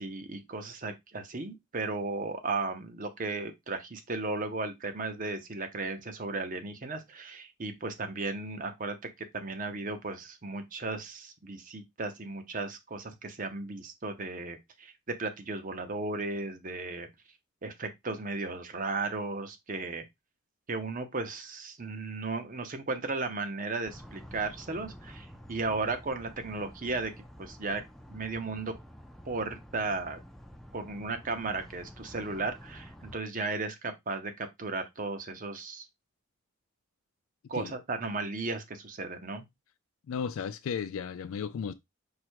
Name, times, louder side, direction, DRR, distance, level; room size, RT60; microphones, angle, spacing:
voice 1, 0.0-9.0 9.3-17.1 17.6-20.0 20.7-27.1 27.4-27.8 28.1-28.7 29.3-30.2 30.7-35.9 37.5-39.5, right 3 dB, 40° right, 0.7 m, -35 dB
sound 1, 23.9-33.2, equal, ahead, 0.4 m, -49 dB
voice 2, 40.1-41.7, left 7 dB, 70° left, 0.3 m, -34 dB
4.9 x 2.2 x 4.5 m
head